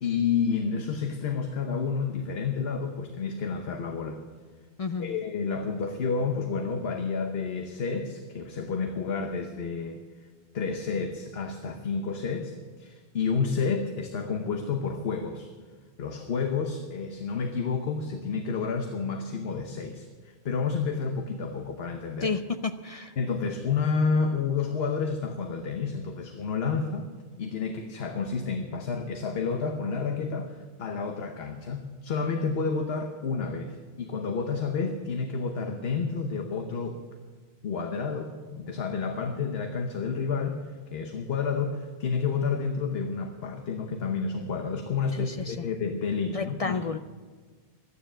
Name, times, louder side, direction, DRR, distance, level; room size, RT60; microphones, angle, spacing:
voice 1, 0.0-4.2 5.0-10.0 10.5-15.5 16.0-22.3 23.2-27.1 27.4-37.0 37.6-40.6 40.9-46.8, left 5 dB, 75° left, 5 dB, 1.2 m, -30 dB
voice 2, 4.8-5.1 22.2-23.1 45.2-45.7 46.3-47.0, left 4 dB, 50° left, 10 dB, 0.4 m, -31 dB
12.0 x 9.9 x 8.8 m, 1.5 s
omnidirectional pair, 1.1 m